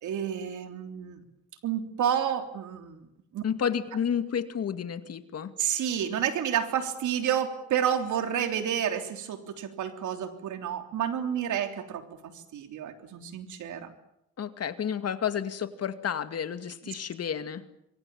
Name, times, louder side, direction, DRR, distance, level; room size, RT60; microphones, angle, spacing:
voice 1, 0.0-1.2 1.6-3.0 3.3-3.4 5.6-13.9, right 9 dB, 75° right, 7 dB, 3.5 m, -30 dB
voice 2, 3.4-5.5 14.4-17.6, left 8 dB, 55° left, 10 dB, 2.2 m, -31 dB
27.5 x 23.5 x 7.3 m, 0.82 s
cardioid pair, 90°, 30 cm